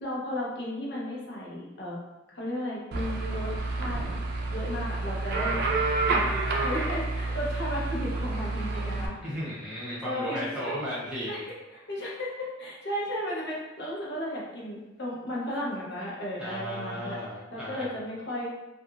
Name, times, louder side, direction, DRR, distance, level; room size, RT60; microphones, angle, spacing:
voice 1, 0.0-2.0 2.3-4.0 4.5-5.7 6.1-9.1 10.0-10.8 11.3-17.2 17.5-18.5, equal, 60° left, -5 dB, 0.7 m, -34 dB
sound 1, 2.9-9.1, right 3 dB, 55° right, 0.4 m, -29 dB
voice 2, 9.2-11.3 16.4-17.9, equal, 5° right, -8 dB, 0.7 m, -35 dB
2.8 x 2.4 x 2.4 m, 1.0 s
head